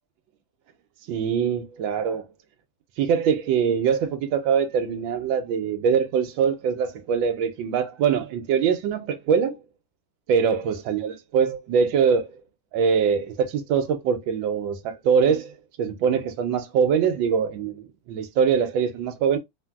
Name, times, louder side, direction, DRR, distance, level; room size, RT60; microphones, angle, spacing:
voice 1, 1.1-2.3 3.0-9.6 10.3-12.3 12.7-19.4, right 7 dB, 90° right, 1.4 m, -23 dB
3.3 x 2.5 x 2.2 m
omnidirectional pair, 2.1 m